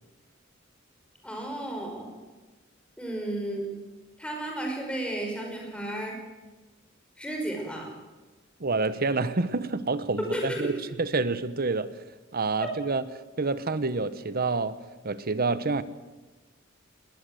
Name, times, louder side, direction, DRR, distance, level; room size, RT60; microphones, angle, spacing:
voice 1, 1.2-2.1 3.0-3.7 4.2-6.2 7.2-7.9 10.2-10.7, right 1 dB, 5° left, 5.3 m, -33 dB
voice 2, 8.6-11.9 12.3-13.0 13.4-14.8 15.0-15.8, right 3 dB, 50° right, 1.1 m, -28 dB
20.0 x 19.0 x 7.9 m
head